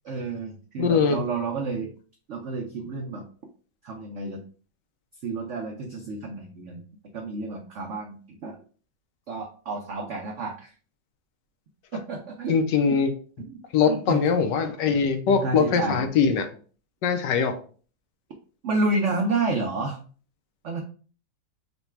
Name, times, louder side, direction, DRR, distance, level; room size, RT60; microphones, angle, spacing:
voice 1, 0.0-1.9 2.3-3.2 3.8-4.4 5.2-6.9 7.1-8.6 9.3-10.7 11.9-12.6 12.9-13.0 13.5-13.6 13.9-14.3 15.3-16.0 18.6-20.0 20.6-20.8, right 3 dB, 90° right, 1 dB, 0.6 m, -30 dB
voice 2, 0.8-1.2 12.5-13.1 13.7-16.5 17.0-17.5, left 6 dB, 75° left, 7 dB, 1.3 m, -22 dB
4.0 x 2.2 x 4.4 m, 0.40 s
omnidirectional pair, 2.0 m